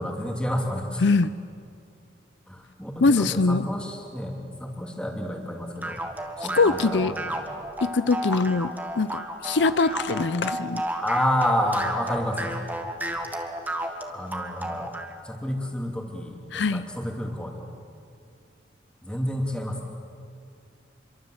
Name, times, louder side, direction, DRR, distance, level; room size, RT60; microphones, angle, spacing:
voice 1, 0.0-1.0 2.5-6.0 6.4-7.5 11.0-12.6 14.1-14.9 15.2-17.6 19.0-19.9, equal, 5° left, 1 dB, 2.8 m, -30 dB
voice 2, 1.0-1.3 3.0-3.6 6.6-7.1 7.8-10.8 16.5-16.8, left 3 dB, 70° left, 14 dB, 0.6 m, -22 dB
sound 1, 5.8-15.1, right 1 dB, 10° right, 1.7 m, -32 dB
27.0 x 23.5 x 8.0 m, 2.4 s
head